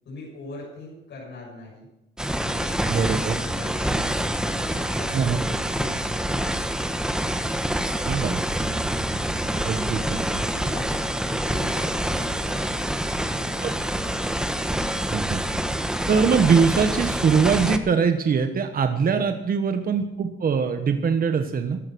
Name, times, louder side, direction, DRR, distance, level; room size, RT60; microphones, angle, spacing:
voice 1, 0.0-1.9 2.4-4.1 4.5-6.9 9.7-13.8 19.1-19.3, left 2 dB, 60° left, -4 dB, 7.3 m, -42 dB
sound 1, 2.2-17.8, right 1 dB, 5° right, 1.3 m, -26 dB
sound 2, 2.2-9.6, right 1 dB, 25° right, 3.3 m, -38 dB
voice 2, 2.9-3.4 5.1-5.4 8.1-8.4 9.6-10.3 13.6-13.7 15.1-15.6 16.1-21.8, right 6 dB, 45° right, 7 dB, 1.3 m, -22 dB
15.0 x 12.5 x 6.2 m, 0.90 s
cardioid pair, 90°, 20 cm